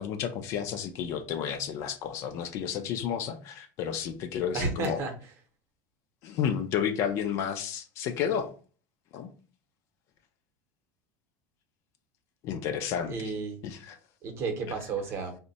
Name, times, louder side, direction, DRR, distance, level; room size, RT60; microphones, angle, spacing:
voice 1, 0.0-5.0 6.2-8.5 9.1-9.3 12.4-13.3 13.6-14.0, left 8 dB, 45° left, 0.4 m, -31 dB
voice 2, 4.5-5.1 13.1-13.6 14.2-15.4, right 4 dB, 35° right, 0.8 m, -32 dB
3.5 x 2.1 x 4.0 m
cardioid pair, 160°, 7 cm